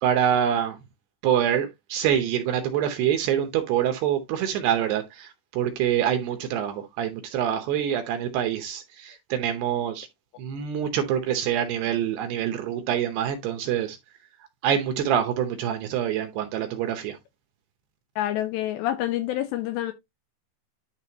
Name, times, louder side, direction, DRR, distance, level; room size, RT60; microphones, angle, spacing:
voice 1, 0.0-0.8 1.2-10.1 10.4-14.0 14.6-17.2, right 9 dB, 75° right, 2.6 m, -25 dB
voice 2, 18.2-19.9, left 13 dB, 80° left, 2.6 m, -27 dB
11.0 x 3.9 x 2.8 m
omnidirectional pair, 5.5 m